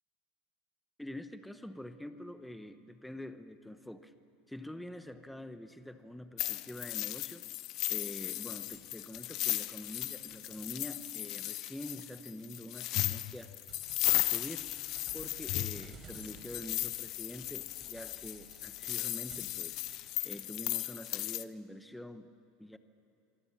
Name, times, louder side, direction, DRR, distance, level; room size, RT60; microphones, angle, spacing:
voice 1, 1.0-4.1 4.5-7.5 7.9-13.5 14.0-14.7 15.1-22.8, left 1 dB, 5° left, 10 dB, 1.0 m, -46 dB
sound 1, 6.4-21.4, left 16 dB, 45° left, 0.7 m, -36 dB
sound 2, 8.7-19.5 19.9-20.3, right 4 dB, 30° right, 5.3 m, -57 dB
26.5 x 24.0 x 7.5 m, 2.8 s
supercardioid pair, 140°, 0 cm